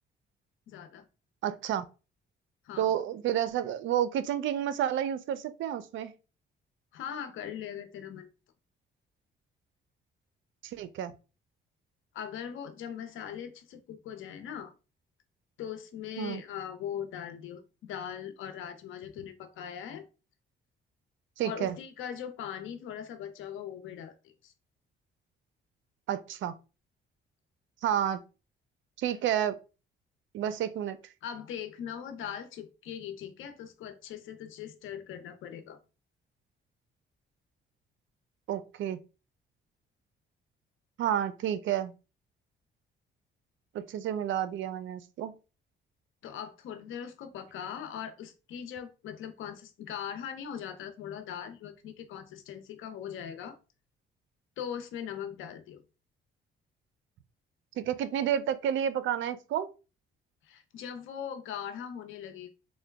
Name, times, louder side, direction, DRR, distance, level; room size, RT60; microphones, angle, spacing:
voice 1, 0.7-1.0 2.6-2.9 6.9-8.3 12.1-14.7 15.6-20.1 21.4-24.5 31.2-35.8 46.2-53.6 54.6-55.8 60.4-62.5, left 8 dB, 80° left, 0.7 m, -40 dB
voice 2, 1.4-1.9 2.8-6.1 10.6-11.1 16.2-16.4 21.4-21.8 26.1-26.5 27.8-28.2 29.0-29.6 30.3-31.0 38.5-39.0 41.0-41.9 43.7-45.3 57.8-59.7, right 10 dB, 75° right, 0.5 m, -30 dB
3.8 x 2.1 x 3.3 m
cardioid pair, 90°, 20 cm